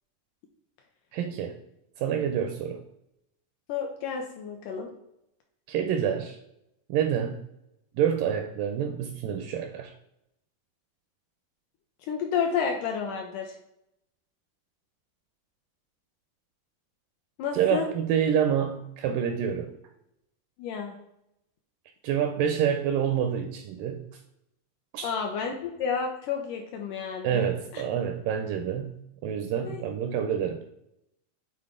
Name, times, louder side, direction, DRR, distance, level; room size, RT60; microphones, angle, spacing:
voice 1, 1.1-1.6 2.0-2.8 5.7-6.4 6.9-7.4 7.9-9.9 17.5-19.7 22.0-24.1 24.9-25.1 27.2-30.6, right 8 dB, 85° right, 7 dB, 2.0 m, -27 dB
voice 2, 3.7-4.9 12.0-13.6 17.4-17.9 20.6-21.0 25.0-27.5 27.7-27.8 29.7-29.8, left 6 dB, 80° left, 3 dB, 1.9 m, -30 dB
8.7 x 4.0 x 3.6 m, 0.82 s
omnidirectional pair, 4.3 m